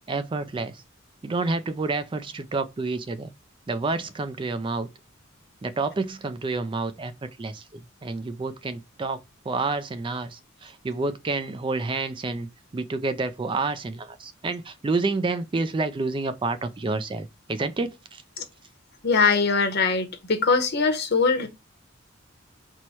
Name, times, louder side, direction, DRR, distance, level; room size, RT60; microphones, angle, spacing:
voice 1, 0.1-0.8 1.2-3.3 3.7-4.9 5.6-7.1 7.4-9.2 9.4-18.2, right 3 dB, 25° right, 0.3 m, -29 dB
voice 2, 19.0-21.5, left 4 dB, 55° left, 0.9 m, -22 dB
4.5 x 2.2 x 4.2 m
head